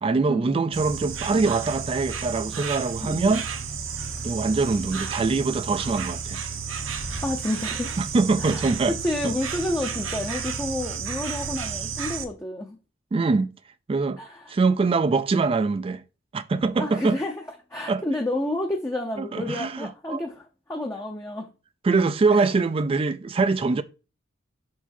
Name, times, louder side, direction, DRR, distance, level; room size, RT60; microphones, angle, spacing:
voice 1, 0.0-3.4 4.2-6.4 8.0-8.9 9.2-9.3 13.1-13.5 13.9-14.2 14.5-16.0 16.3-17.2 17.9-18.0 19.2-20.2 21.8-23.8, right 4 dB, 25° right, 0.3 m, -23 dB
Insect, 0.7-12.2, right 6 dB, 70° right, 0.9 m, -32 dB
voice 2, 3.0-3.3 7.2-8.0 8.4-12.8 14.2-14.5 16.8-17.3 17.7-21.5 22.3-22.4, left 1 dB, 15° left, 0.6 m, -30 dB
5.5 x 4.6 x 4.2 m
head